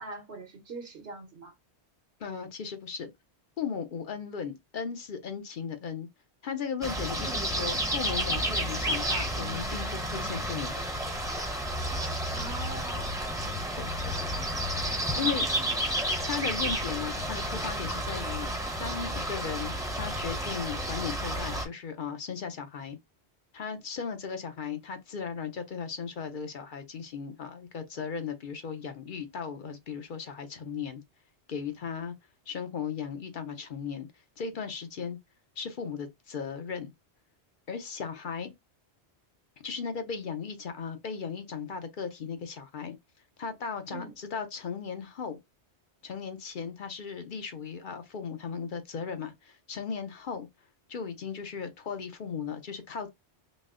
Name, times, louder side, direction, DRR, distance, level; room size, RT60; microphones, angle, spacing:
voice 1, 0.0-1.5 7.2-7.5 12.4-13.1 15.1-15.8 43.9-44.1, right 3 dB, 65° right, 1.2 m, -43 dB
voice 2, 2.2-3.1 3.6-6.1 6.4-10.8 13.7-13.9 15.2-15.5 16.2-18.5 18.8-23.0 23.5-31.0 31.5-32.1 32.5-34.1 34.4-35.2 35.6-36.9 37.7-38.5 39.6-43.0 43.4-45.4 46.0-50.5 50.9-53.1, left 6 dB, 55° left, 0.7 m, -36 dB
sound 1, 6.8-21.6, right 1 dB, 5° right, 0.7 m, -31 dB
4.1 x 2.0 x 3.6 m
omnidirectional pair, 1.1 m